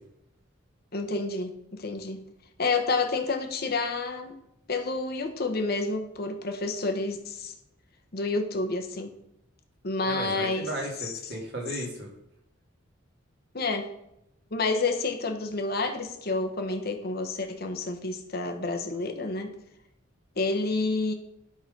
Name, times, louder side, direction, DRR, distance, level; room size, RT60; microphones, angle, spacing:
voice 1, 0.9-2.3 2.6-4.4 4.7-7.5 8.1-9.1 9.8-10.7 11.0-11.1 13.5-13.9 14.5-19.5 20.4-21.1, left 3 dB, 50° left, 4 dB, 1.0 m, -29 dB
voice 2, 10.0-12.1, right 1 dB, 55° right, -1 dB, 2.2 m, -35 dB
11.5 x 4.0 x 5.3 m, 0.81 s
head